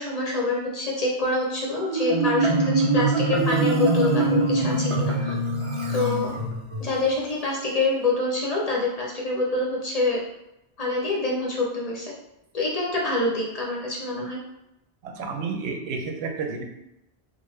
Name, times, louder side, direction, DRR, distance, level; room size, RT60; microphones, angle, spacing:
voice 1, 0.0-5.4 5.9-6.3 6.8-10.2 10.8-12.1 12.5-14.4, left 2 dB, 45° left, -3 dB, 0.6 m, -26 dB
Marimba xylophone, 1.7-6.9, right 2 dB, 40° right, 0.5 m, -23 dB
voice 2, 15.0-16.6, right 4 dB, 90° right, 3 dB, 0.8 m, -31 dB
3.8 x 2.0 x 3.1 m, 0.89 s
omnidirectional pair, 1.1 m